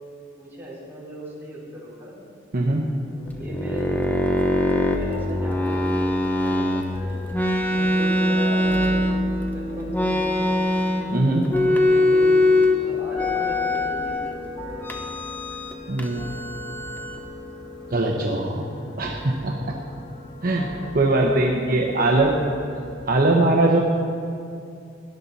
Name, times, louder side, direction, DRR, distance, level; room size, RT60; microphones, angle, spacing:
voice 1, 0.4-2.2 3.0-4.2 4.5-7.2 7.7-9.1 9.5-10.5 11.0-14.8 20.7-22.6, equal, 10° right, -7 dB, 4.1 m, -37 dB
voice 2, 2.5-2.8 11.1-11.5 15.9-16.3 17.9-18.7 19.0-19.8 20.4-20.7 20.9-22.3 23.1-23.8, right 2 dB, 50° right, 0 dB, 1.0 m, -21 dB
sound 1, 3.3-6.9 7.3-9.4 9.9-11.2 11.5-12.8 13.1-14.3 14.8-15.7 16.0-17.2, left 1 dB, 10° left, 0.9 m, -22 dB
sound 2, 4.1-23.1, left 1 dB, 25° left, 1.4 m, -38 dB
17.5 x 11.5 x 4.1 m, 2.4 s
head